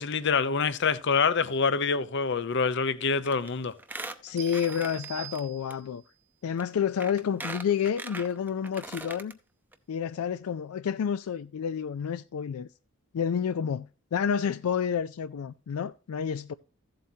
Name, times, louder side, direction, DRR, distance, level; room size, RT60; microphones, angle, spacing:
voice 1, 0.0-3.7, left 5 dB, 55° left, 0.7 m, -26 dB
Squeak, 3.2-3.5 3.8-5.4 5.7-5.8 6.6-6.7 7.0-9.3 9.7-9.8 10.0-10.1, right 2 dB, 10° right, 0.7 m, -40 dB
voice 2, 4.2-6.0 6.4-9.4 9.9-12.7 13.1-16.5, left 7 dB, 85° left, 0.4 m, -29 dB
sound 1, 4.4-6.1, right 14 dB, 55° right, 0.9 m, -44 dB
14.5 x 7.7 x 2.8 m
head